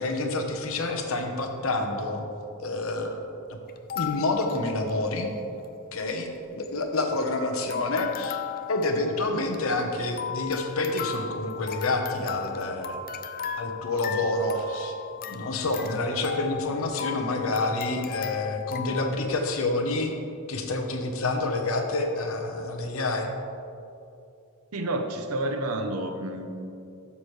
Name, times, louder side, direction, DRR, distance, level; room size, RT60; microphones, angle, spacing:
voice 1, 0.0-2.2 2.6-3.2 3.5-3.6 3.9-5.3 5.9-8.4 8.7-13.0 13.6-14.9 15.3-20.1 20.5-23.3, left 2 dB, 70° left, 4 dB, 1.0 m, -28 dB
sound 1, 3.7-5.4 5.6-5.7 5.9-6.2 6.6-7.4 7.7-19.1, left 8 dB, 40° left, 0.5 m, -37 dB
voice 2, 24.7-26.6, right 1 dB, 90° right, 6 dB, 0.8 m, -30 dB
13.0 x 7.1 x 3.3 m, 2.6 s
head